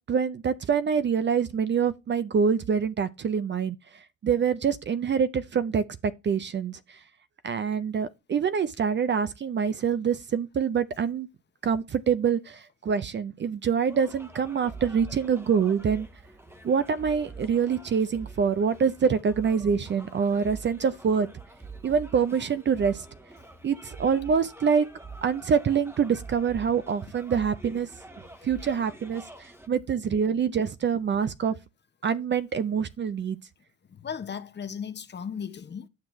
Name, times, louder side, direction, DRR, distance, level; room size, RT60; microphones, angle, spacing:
voice 1, 0.1-3.8 4.2-7.0 7.4-11.3 11.6-16.1 16.6-21.3 21.8-23.1 23.6-24.9 25.2-27.9 28.4-31.5 32.0-33.4, right 6 dB, 35° right, 0.5 m, -25 dB
sound 1, 13.9-29.7, right 3 dB, 10° right, 0.9 m, -46 dB
voice 2, 28.4-28.7 33.9-35.9, left 7 dB, 35° left, 0.8 m, -37 dB
9.5 x 6.1 x 3.1 m
supercardioid pair, 70°, 32 cm